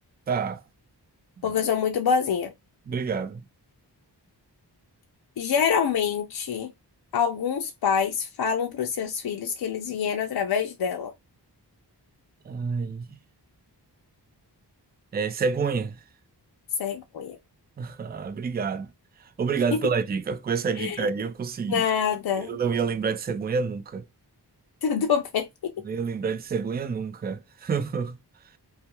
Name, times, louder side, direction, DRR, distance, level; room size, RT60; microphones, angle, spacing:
voice 1, 0.3-0.6 1.4-1.5 2.9-3.4 12.5-13.1 15.1-16.0 17.8-18.9 19.2-21.8 22.4-24.0 25.8-28.2, right 5 dB, 25° right, 0.3 m, -28 dB
voice 2, 1.4-2.5 5.4-6.7 7.1-11.1 16.8-17.4 19.7-19.8 20.8-21.1 21.7-22.6 24.8-25.7, left 7 dB, 65° left, 0.5 m, -26 dB
2.2 x 2.2 x 2.9 m
wide cardioid pair, 75°, 42 cm